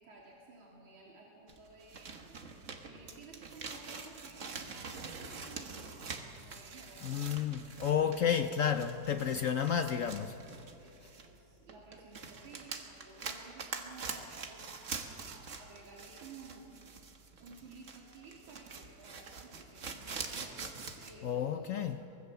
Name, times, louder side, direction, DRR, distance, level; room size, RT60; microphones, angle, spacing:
voice 1, 0.0-7.4 7.7-8.2 10.5-16.9 17.4-22.1, right 3 dB, 85° right, 3.5 m, -55 dB
sound 1, 1.5-11.4 11.7-21.2, right 4 dB, 45° right, 1.5 m, -45 dB
voice 2, 7.0-10.3 21.2-22.0, left 8 dB, 70° left, 0.8 m, -31 dB
24.0 x 19.0 x 6.9 m
omnidirectional pair, 2.1 m